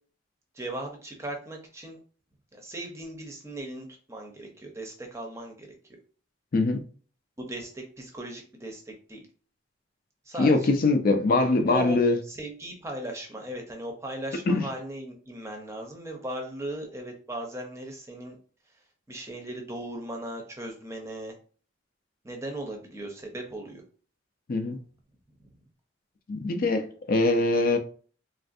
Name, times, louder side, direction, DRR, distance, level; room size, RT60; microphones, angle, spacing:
voice 1, 0.5-2.0 2.5-5.7 7.5-9.3 10.2-10.8 11.7-12.0 12.3-18.4 19.1-21.3 22.2-23.8 25.4-25.6, right 1 dB, 15° right, 0.6 m, -37 dB
voice 2, 6.5-6.8 10.4-12.2 14.5-14.7 24.5-24.8 26.3-27.8, left 3 dB, 50° left, 0.4 m, -23 dB
3.3 x 2.4 x 2.6 m
head